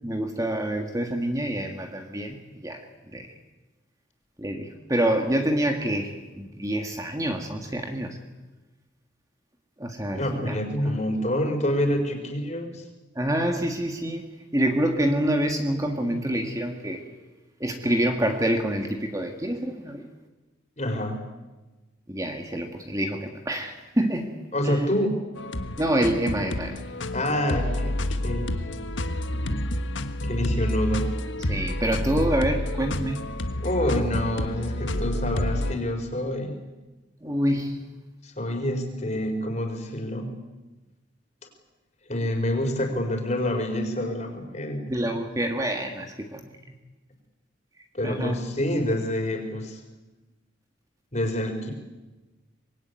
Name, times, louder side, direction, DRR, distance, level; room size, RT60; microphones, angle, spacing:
voice 1, 0.0-2.8 3.1-3.3 4.4-8.2 9.8-10.6 10.9-11.0 13.2-17.0 17.6-20.1 22.1-24.8 25.8-26.8 27.2-27.4 29.3-29.6 31.5-33.3 37.2-38.0 44.9-46.5 48.0-48.4, right 1 dB, 15° right, 4 dB, 1.8 m, -27 dB
voice 2, 10.1-12.8 20.8-21.2 24.5-25.3 27.1-28.5 30.2-31.1 33.6-36.5 38.2-40.3 42.1-44.8 47.9-49.8 51.1-51.7, left 1 dB, 35° left, 4 dB, 4.7 m, -27 dB
sound 1, 25.4-35.7, left 1 dB, 75° left, 1.4 m, -29 dB
24.5 x 21.5 x 9.5 m, 1.2 s
head